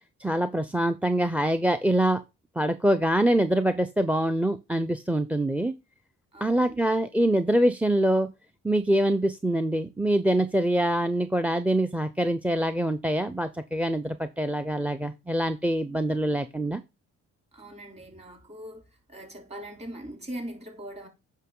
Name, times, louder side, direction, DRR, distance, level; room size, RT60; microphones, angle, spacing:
voice 1, 0.2-2.2 2.6-5.8 6.4-8.3 8.6-16.8, right 1 dB, 5° right, 0.6 m, -24 dB
voice 2, 6.3-6.8 17.5-18.8 19.1-21.1, right 1 dB, 20° right, 3.3 m, -41 dB
8.2 x 5.6 x 3.8 m
cardioid pair, 90°, 30 cm